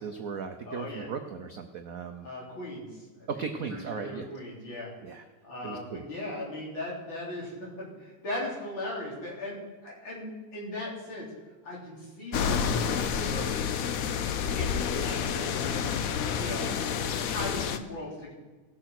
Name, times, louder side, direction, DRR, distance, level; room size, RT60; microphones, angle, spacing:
voice 1, 0.0-2.3 3.3-4.3 5.0-5.2 5.6-6.0, right 6 dB, 70° right, 7 dB, 0.8 m, -37 dB
voice 2, 0.7-1.1 2.2-3.3 3.7-4.9 5.4-11.3 11.6-13.5 14.4-15.8 16.3-16.7 17.2-18.3, left 1 dB, 60° left, -5 dB, 4.5 m, -38 dB
sound 1, 12.3-17.8, left 7 dB, 90° left, 0.7 m, -29 dB
18.0 x 6.8 x 5.9 m, 1.2 s
omnidirectional pair, 2.4 m